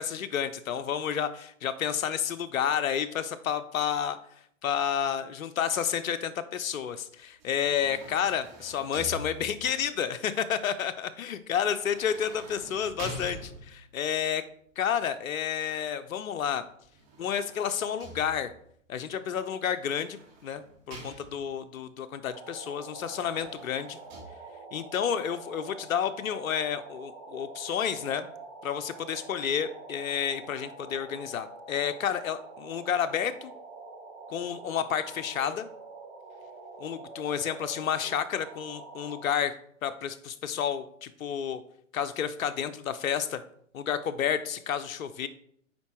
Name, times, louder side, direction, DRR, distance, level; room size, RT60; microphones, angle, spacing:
voice 1, 0.0-4.2 4.6-14.4 14.8-16.6 17.2-18.5 18.9-24.0 24.7-28.3 28.6-33.5 34.3-35.7 36.8-39.6 39.8-41.6 41.9-43.4 43.7-45.3, left 8 dB, 80° left, 11 dB, 0.6 m, -30 dB
sound 1, 7.4-9.8 11.7-14.0 16.8-18.7 19.7-21.7 23.0-24.2, right 2 dB, 30° right, 2.4 m, -46 dB
sound 2, 22.3-39.2, right 3 dB, 15° right, 1.3 m, -46 dB
9.4 x 3.8 x 3.0 m, 0.67 s
hypercardioid pair, 135°, 40 cm